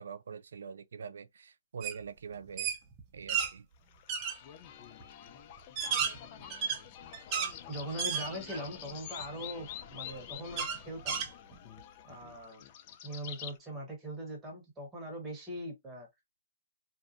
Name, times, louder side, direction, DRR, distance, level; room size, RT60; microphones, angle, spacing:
voice 1, 0.0-2.7 3.1-3.7, right 6 dB, 75° right, 0.3 m, -44 dB
sound 1, 1.8-2.0 2.3-3.5 4.1-4.4 5.0-5.1 5.6-7.5 8.0-8.7 9.2-9.3 10.6-11.8, right 7 dB, 25° right, 0.6 m, -33 dB
sound 2, 3.9-13.6, left 10 dB, 35° left, 0.3 m, -47 dB
voice 2, 7.7-11.2 12.0-12.6 13.0-16.1, right 1 dB, 10° right, 1.1 m, -41 dB
2.6 x 2.1 x 2.5 m
hypercardioid pair, 155°, 0 cm